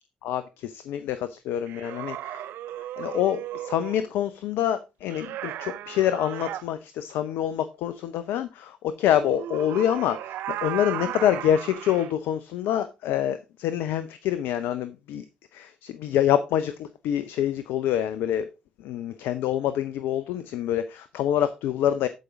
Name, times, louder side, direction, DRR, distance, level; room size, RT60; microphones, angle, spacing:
voice 1, 0.2-2.4 3.0-15.2 15.5-18.4 18.8-22.1, left 10 dB, 75° left, 0.6 m, -26 dB
sound 1, 1.7-4.1 5.1-6.6 9.2-12.1, right 13 dB, 70° right, 0.5 m, -35 dB
13.0 x 5.2 x 3.7 m
hypercardioid pair, 45°, 4 cm